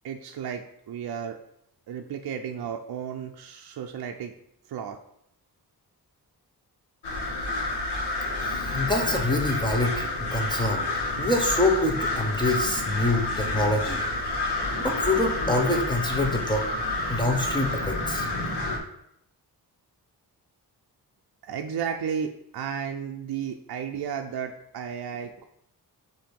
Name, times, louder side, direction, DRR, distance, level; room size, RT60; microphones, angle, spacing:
voice 1, 0.0-1.4 1.9-4.3 4.7-5.0 21.4-25.4, right 7 dB, 70° right, 3 dB, 0.5 m, -33 dB
sound 1, 7.0-18.8, left 2 dB, 85° left, 1.3 m, -29 dB
voice 2, 8.4-10.9 11.2-14.0 14.8-18.3, left 2 dB, 10° left, 0 dB, 0.9 m, -26 dB
7.4 x 2.8 x 5.2 m, 0.75 s
wide cardioid pair, 165°, 39 cm